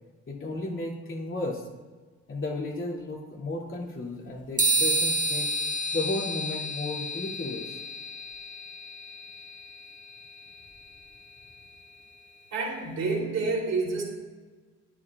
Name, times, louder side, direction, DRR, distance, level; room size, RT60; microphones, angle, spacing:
voice 1, 0.3-1.6 2.3-5.5 5.9-7.8, left 2 dB, 40° left, -2 dB, 2.6 m, -33 dB
sound 1, 4.6-12.2, right 1 dB, 25° right, 1.6 m, -31 dB
voice 2, 12.5-14.0, right 3 dB, 60° right, -2 dB, 3.1 m, -28 dB
12.5 x 10.0 x 2.4 m, 1.4 s
cardioid pair, 90°, 30 cm